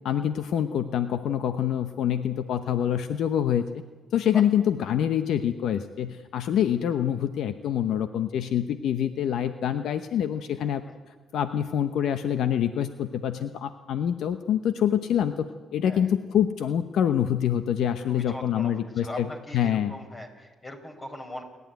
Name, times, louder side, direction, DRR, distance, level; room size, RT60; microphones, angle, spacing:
voice 1, 0.0-3.6 4.1-10.8 11.3-19.3 19.5-19.9, left 9 dB, 80° left, 10 dB, 0.9 m, -26 dB
voice 2, 18.1-21.4, left 1 dB, 35° left, 5 dB, 4.8 m, -40 dB
28.5 x 12.0 x 9.3 m, 1.3 s
cardioid pair, 70°, 0 cm